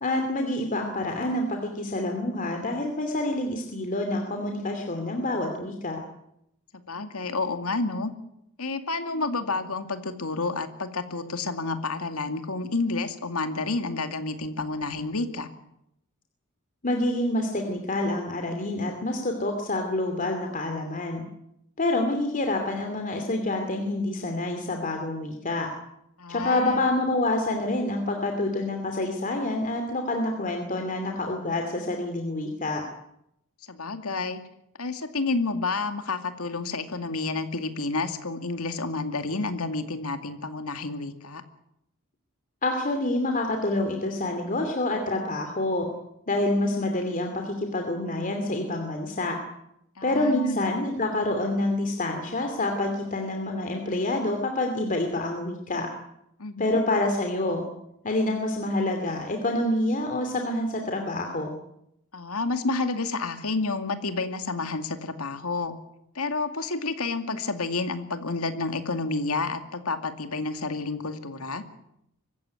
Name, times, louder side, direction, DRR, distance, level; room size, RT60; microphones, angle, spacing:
voice 1, 0.0-6.0 16.8-21.2 21.8-25.7 26.3-32.8 42.6-45.9 46.3-49.4 50.0-55.9 56.6-57.6 58.0-61.5, left 2 dB, 40° left, 4 dB, 2.7 m, -27 dB
voice 2, 6.9-8.1 8.6-15.5 26.2-26.9 33.7-34.4 34.8-41.4 50.0-50.6 56.4-56.8 62.1-65.7 66.2-71.6, left 3 dB, 75° left, 8 dB, 2.3 m, -30 dB
24.5 x 15.0 x 9.8 m, 0.80 s
head